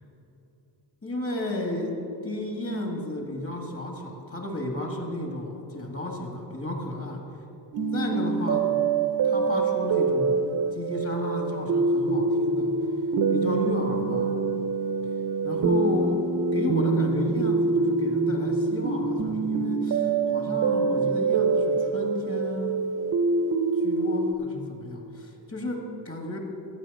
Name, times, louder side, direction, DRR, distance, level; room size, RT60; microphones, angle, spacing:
voice 1, 1.0-7.2 7.9-8.7 9.2-10.4 10.7-12.8 13.3-14.4 15.4-22.8 23.7-26.4, left 1 dB, 30° left, 2 dB, 1.7 m, -33 dB
sound 1, 7.7-24.3, right 4 dB, 45° right, 0.7 m, -25 dB
13.0 x 8.5 x 5.3 m, 2.9 s
cardioid pair, 155°, 46 cm